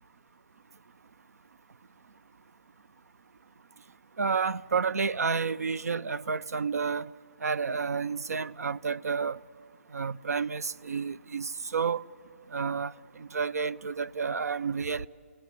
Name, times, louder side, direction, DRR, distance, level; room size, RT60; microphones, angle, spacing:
voice 1, 4.2-7.1 7.4-9.4 9.9-12.0 12.5-12.9 13.3-15.1, right 5 dB, 85° right, 0.6 m, -30 dB
30.0 x 17.5 x 9.7 m
hypercardioid pair, 160°, 8 cm